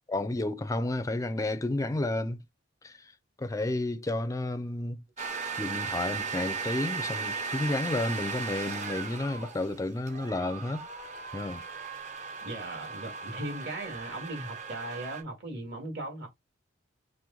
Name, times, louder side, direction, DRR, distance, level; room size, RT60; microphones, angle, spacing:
voice 1, 0.1-2.4 2.8-3.1 3.4-5.0 5.6-10.9 11.3-11.6, left 2 dB, 15° left, 0.4 m, -31 dB
sound 1, 5.2-15.2, right 5 dB, 35° right, 0.7 m, -37 dB
voice 2, 12.4-16.3, right 1 dB, 55° right, 1.7 m, -38 dB
4.5 x 2.1 x 3.8 m
head